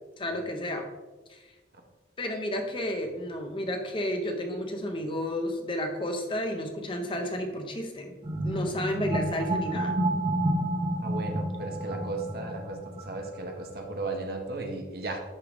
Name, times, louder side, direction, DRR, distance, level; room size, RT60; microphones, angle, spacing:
voice 1, 0.2-0.8 1.3-1.5 2.2-8.2 8.4-10.0, left 1 dB, 25° left, 4 dB, 0.7 m, -32 dB
sound 1, 8.2-13.5, right 1 dB, 30° right, 0.8 m, -30 dB
voice 2, 11.0-15.2, right 2 dB, 55° right, 3 dB, 1.0 m, -35 dB
10.5 x 3.7 x 3.5 m, 1.2 s
head